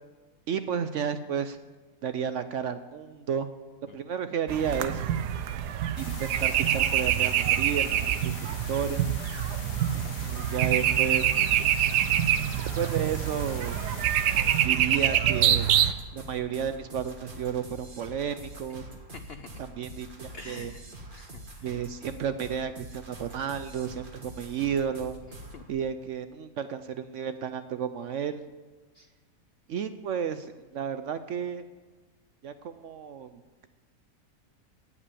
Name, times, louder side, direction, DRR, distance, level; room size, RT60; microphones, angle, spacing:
voice 1, 0.5-1.6 2.0-3.5 3.8-5.0 6.0-9.1 9.9-11.3 12.8-13.8 14.6-15.7 16.1-18.9 19.8-20.7 21.6-25.1 25.7-28.4 29.7-31.6 32.4-33.3, right 8 dB, 65° right, 11 dB, 0.8 m, -32 dB
sound 1, 4.5-15.9, right 10 dB, 80° right, 1.3 m, -26 dB
sound 2, 6.0-14.7, left 7 dB, 60° left, 1.3 m, -44 dB
voice 2, 11.6-12.1 19.1-19.6 20.3-21.8 25.5-25.6 28.9-29.1, left 4 dB, 85° left, 10 dB, 0.5 m, -47 dB
sound 3, 14.0-25.7, right 1 dB, 35° right, 1.6 m, -45 dB
16.5 x 5.6 x 8.5 m, 1.3 s
omnidirectional pair, 1.7 m